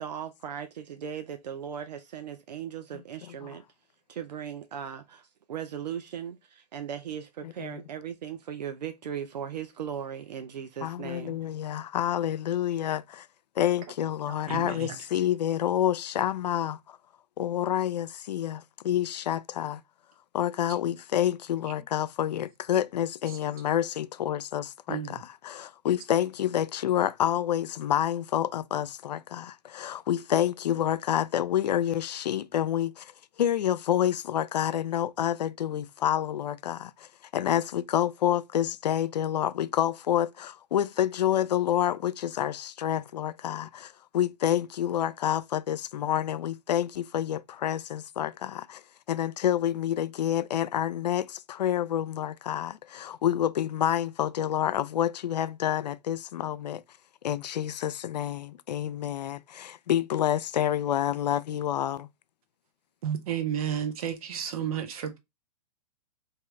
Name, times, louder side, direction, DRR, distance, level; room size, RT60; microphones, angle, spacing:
voice 1, 0.0-3.6 4.1-11.4, right 8 dB, 85° right, 0.6 m, -38 dB
voice 2, 7.4-7.8 10.8-13.3 13.6-17.0 17.4-19.8 20.3-33.1 33.4-37.1 37.3-48.8 49.1-56.8 57.2-62.1, left 11 dB, 85° left, 0.4 m, -28 dB
voice 3, 14.3-15.0 24.9-25.2 63.0-65.2, right 8 dB, 60° right, 1.1 m, -32 dB
3.7 x 2.8 x 3.1 m
hypercardioid pair, 130°, 21 cm